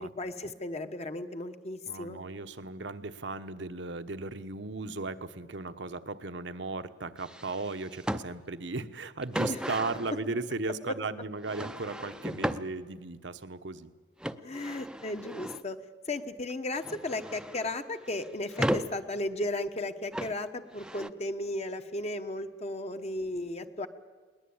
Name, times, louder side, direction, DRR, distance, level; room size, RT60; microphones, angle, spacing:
voice 1, 0.0-2.2 9.5-9.6 14.4-15.8 16.0-23.9, left 2 dB, 35° left, 8 dB, 1.1 m, -35 dB
voice 2, 1.9-13.9, right 3 dB, 75° right, 9 dB, 1.1 m, -36 dB
sound 1, 7.2-8.2 9.2-10.1 11.4-12.6 14.2-15.6 16.5-17.7 18.1-18.9 20.1-20.3 20.7-21.1, equal, 5° right, 0.6 m, -35 dB
21.0 x 19.5 x 8.7 m, 1.4 s
head